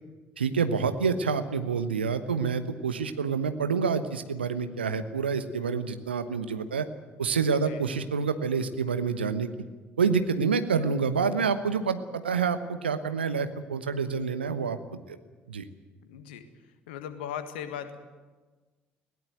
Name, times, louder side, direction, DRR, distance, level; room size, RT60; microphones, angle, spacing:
voice 1, 0.4-6.9 7.2-9.5 10.0-14.8 15.1-15.2 15.5-15.6, right 5 dB, 80° right, 10 dB, 1.0 m, -27 dB
voice 2, 7.5-7.8 16.0-16.4 16.9-18.0, left 9 dB, 70° left, 10 dB, 1.7 m, -38 dB
20.5 x 18.0 x 9.2 m, 1.3 s
figure-of-eight pair, 50°, 6 cm